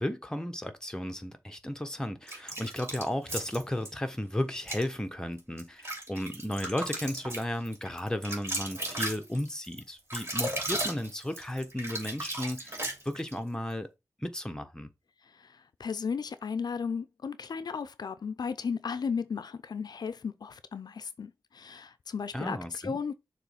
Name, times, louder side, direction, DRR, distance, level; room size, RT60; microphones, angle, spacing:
voice 1, 0.0-13.9 14.2-14.9 22.3-23.0, left 1 dB, 10° left, 1.2 m, -34 dB
sound 1, 2.3-3.9 4.6-4.9 5.4-13.4, right 1 dB, 35° right, 3.0 m, -36 dB
voice 2, 15.2-23.1, left 6 dB, 85° left, 0.5 m, -35 dB
6.7 x 3.2 x 5.7 m
wide cardioid pair, 85°, 7 cm